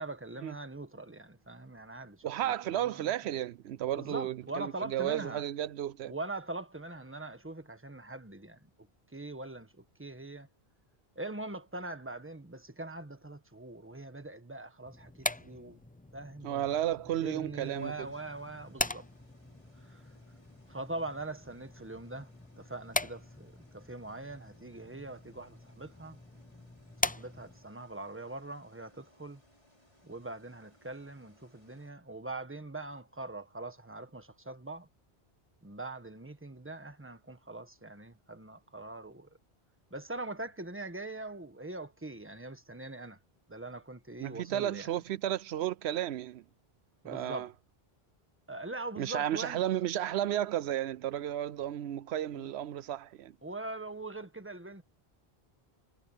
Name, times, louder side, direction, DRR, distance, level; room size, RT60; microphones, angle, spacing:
voice 1, 0.0-3.0 4.0-5.5 6.0-8.6 9.1-10.5 11.1-15.8 16.1-16.6 17.2-19.0 19.8-20.0 20.7-22.3 22.6-26.2 27.0-29.4 30.0-34.9 35.6-39.3 39.9-43.2 43.5-44.9 47.0-47.5 48.5-49.6 52.3-52.5 53.4-54.8, right 2 dB, 10° right, 1.4 m, -42 dB
voice 2, 2.2-6.1 16.4-18.1 44.2-46.4 47.0-47.5 49.0-53.3, right 11 dB, 85° right, 0.8 m, -33 dB
sound 1, 14.9-27.7, left 2 dB, 10° left, 0.4 m, -41 dB
sound 2, 17.6-31.9, left 1 dB, 30° left, 5.4 m, -66 dB
omnidirectional pair, 1.1 m